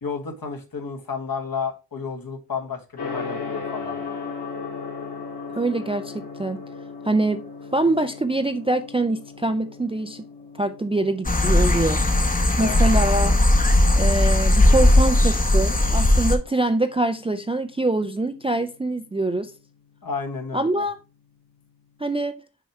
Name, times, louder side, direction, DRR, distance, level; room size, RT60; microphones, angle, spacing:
voice 1, 0.0-4.0 12.6-13.0 20.0-20.9, left 5 dB, 60° left, 1.4 m, -32 dB
Gong, 3.0-21.9, left 5 dB, 90° left, 3.2 m, -39 dB
voice 2, 5.5-6.6 7.0-7.5 7.7-10.2 10.6-12.0 12.6-13.4 14.0-19.5 20.5-21.0 22.0-22.4, right 2 dB, 15° right, 0.3 m, -24 dB
sound 1, 11.2-16.4, left 1 dB, 20° left, 0.8 m, -18 dB
6.3 x 4.7 x 4.2 m
wide cardioid pair, 150°, 40 cm